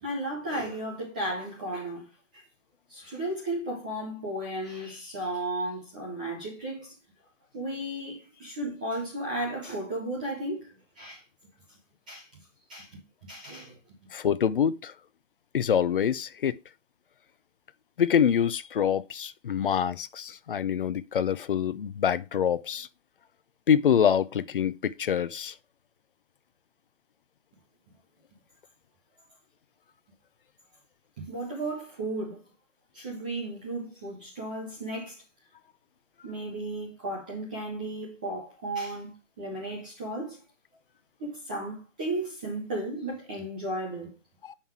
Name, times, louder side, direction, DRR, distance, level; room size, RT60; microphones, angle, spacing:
voice 1, 0.0-2.1 2.3-2.4 2.9-6.9 7.5-11.2 12.1-12.4 12.7-13.8 31.2-32.4 32.9-35.2 36.2-40.4 41.2-44.1, right 1 dB, 5° right, 0.6 m, -34 dB
voice 2, 14.1-14.9 15.5-16.5 18.0-22.9 23.7-25.5, left 8 dB, 45° left, 0.6 m, -25 dB
9.0 x 5.8 x 4.5 m
hypercardioid pair, 165°, 38 cm